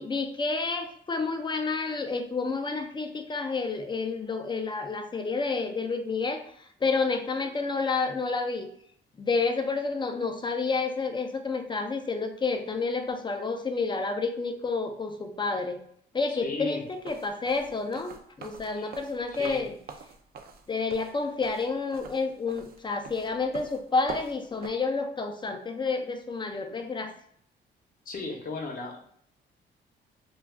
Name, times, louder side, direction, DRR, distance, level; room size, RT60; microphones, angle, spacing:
voice 1, 0.0-8.7 9.2-15.8 16.1-18.1 18.4-19.7 20.7-27.1, left 4 dB, 25° left, 5 dB, 0.4 m, -29 dB
voice 2, 16.3-16.8 18.7-18.9 19.3-19.6 28.1-29.0, left 3 dB, 45° left, 2 dB, 0.8 m, -35 dB
sound 1, 16.9-24.7, right 5 dB, 50° right, 0.4 m, -44 dB
2.3 x 2.3 x 3.4 m, 0.65 s
cardioid pair, 90°, 20 cm